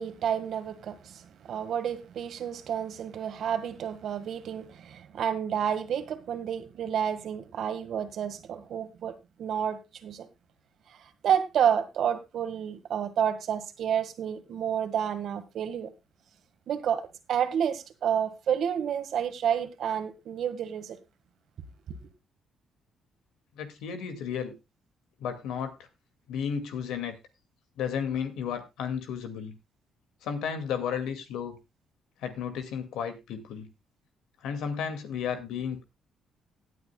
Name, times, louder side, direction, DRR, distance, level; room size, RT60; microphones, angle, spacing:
voice 1, 0.0-10.3 10.9-15.9 16.7-21.0, right 8 dB, 70° right, 1.6 m, -30 dB
voice 2, 23.6-24.5 25.2-25.7 26.3-27.1 27.8-29.5 30.2-31.6 32.2-33.7 34.4-35.8, left 7 dB, 90° left, 2.1 m, -33 dB
17.5 x 9.6 x 2.3 m
cardioid pair, 90°, 0 cm